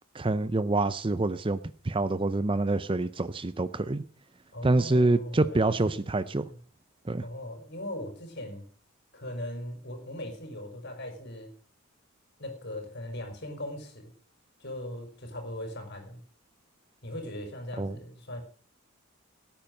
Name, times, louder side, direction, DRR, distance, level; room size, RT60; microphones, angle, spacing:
voice 1, 0.1-1.6 1.8-4.0 4.6-6.5 7.1-7.2 17.8-18.0, right 2 dB, 25° right, 15 dB, 0.5 m, -26 dB
voice 2, 4.5-6.6 7.2-8.7 9.1-11.5 12.4-14.1 14.6-16.2 17.0-18.4, left 1 dB, 50° left, 5 dB, 4.7 m, -39 dB
17.0 x 9.1 x 5.1 m, 0.41 s
head